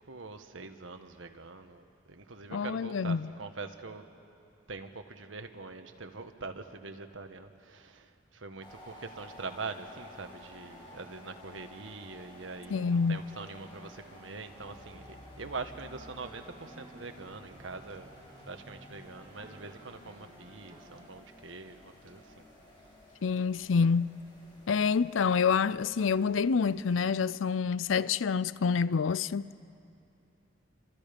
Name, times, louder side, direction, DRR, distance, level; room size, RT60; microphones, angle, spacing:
voice 1, 0.0-4.1 4.7-18.1 18.4-22.5, right 3 dB, 85° right, 1.4 m, -44 dB
voice 2, 2.5-3.2 12.7-13.2 23.2-24.1 24.7-29.7, left 5 dB, 85° left, 0.5 m, -27 dB
sound 1, 8.6-26.9, left 1 dB, 25° left, 6.9 m, -54 dB
sound 2, 14.3-21.1, equal, 35° right, 3.2 m, -53 dB
29.0 x 26.0 x 5.3 m
head